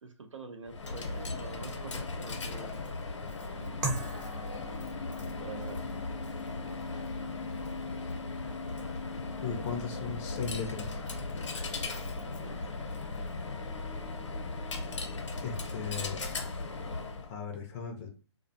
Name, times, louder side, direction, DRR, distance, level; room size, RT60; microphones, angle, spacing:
voice 1, 0.0-2.8 3.6-4.2 5.4-5.9 12.2-12.6, right 4 dB, 90° right, 6 dB, 0.6 m, -46 dB
Coin (dropping), 0.7-17.3, left 3 dB, 80° left, 0.8 m, -37 dB
sound 1, 3.8-12.7, right 2 dB, 35° right, 0.7 m, -44 dB
voice 2, 9.4-11.0 15.4-16.2 16.8-16.9 17.3-18.1, left 6 dB, 25° left, 2 dB, 0.4 m, -37 dB
2.4 x 2.2 x 2.5 m, 0.35 s
hypercardioid pair, 150°, 15 cm